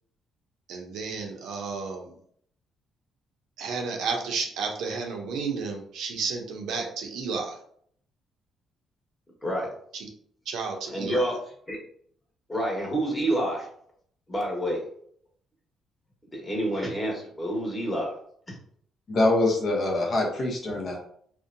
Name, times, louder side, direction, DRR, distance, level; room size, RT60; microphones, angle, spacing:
voice 1, 0.7-2.1 3.6-7.6 9.9-10.1 10.5-11.3, right 4 dB, 85° right, 2 dB, 0.6 m, -32 dB
voice 2, 10.9-11.4 11.7-11.8 12.5-13.7 14.3-14.8 16.3-18.1, right 1 dB, 15° left, -3 dB, 1.2 m, -28 dB
voice 3, 19.1-21.0, left 2 dB, 55° left, 0 dB, 0.8 m, -24 dB
2.7 x 2.1 x 2.5 m, 0.62 s
cardioid pair, 90°, 0 cm